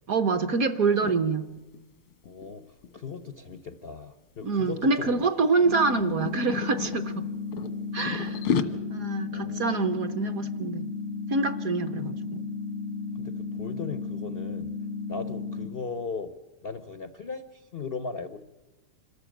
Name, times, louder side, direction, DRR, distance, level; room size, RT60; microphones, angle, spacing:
voice 1, 0.1-1.5 4.4-7.3 7.9-8.4 8.9-10.9 11.3-12.2, right 4 dB, 55° right, 9 dB, 1.0 m, -26 dB
sound 1, 0.9-1.2 1.6-1.8 2.1-4.0 4.6-4.9 5.2-7.0 7.5-8.6, left 7 dB, 90° left, 2.2 m, -32 dB
voice 2, 2.2-5.2 9.3-9.6 12.0-12.2 13.1-14.7 15.1-16.3 16.6-18.4, left 5 dB, 70° left, 11 dB, 0.5 m, -38 dB
sound 2, 5.7-15.7, left 4 dB, 70° right, 2.6 m, -34 dB
26.5 x 14.0 x 9.2 m, 1.1 s
omnidirectional pair, 2.3 m